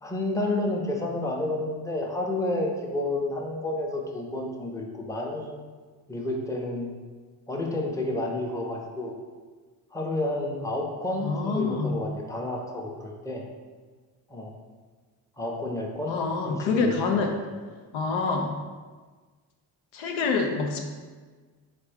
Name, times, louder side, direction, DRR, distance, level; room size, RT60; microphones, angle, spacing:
voice 1, 0.0-5.6 6.1-6.9 7.5-9.2 9.9-13.4 14.3-14.6 15.4-16.2 16.4-17.3, left 2 dB, 5° left, -1 dB, 0.7 m, -30 dB
voice 2, 11.2-12.0 16.1-17.4 17.9-18.6 19.9-20.8, left 4 dB, 75° left, 2 dB, 0.6 m, -26 dB
3.6 x 3.4 x 3.4 m, 1.4 s
supercardioid pair, 50°, 47 cm